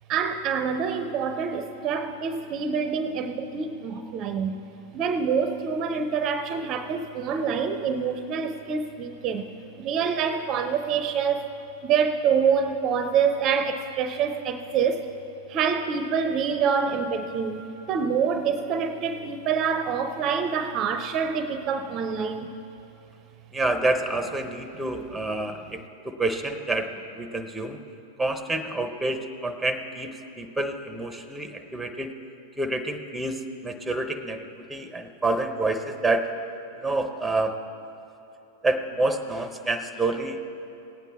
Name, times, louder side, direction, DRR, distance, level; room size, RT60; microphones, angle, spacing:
voice 1, 0.1-4.6 4.9-9.5 9.8-11.4 11.8-15.1 15.5-22.5, right 6 dB, 40° right, 9 dB, 0.6 m, -26 dB
voice 2, 23.5-25.8 26.0-27.8 28.2-32.1 32.6-36.3 36.8-37.5 38.6-40.4, right 2 dB, 5° right, 8 dB, 0.8 m, -28 dB
18.0 x 9.1 x 3.5 m, 2.9 s
hypercardioid pair, 95°, 0 cm